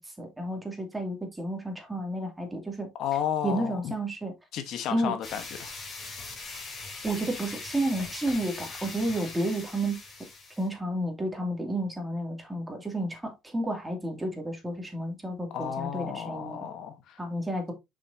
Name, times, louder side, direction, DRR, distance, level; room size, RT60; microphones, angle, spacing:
voice 1, 0.0-2.9 3.4-4.3 4.9-5.1 7.0-10.0 10.6-16.7 17.2-17.7, right 1 dB, 10° right, 2.5 m, -31 dB
voice 2, 3.0-3.9 4.5-5.7 15.5-17.2, left 9 dB, 65° left, 1.2 m, -32 dB
sound 1, 5.2-10.7, left 3 dB, 35° left, 3.3 m, -41 dB
6.6 x 6.2 x 2.7 m
cardioid pair, 100°, 0 cm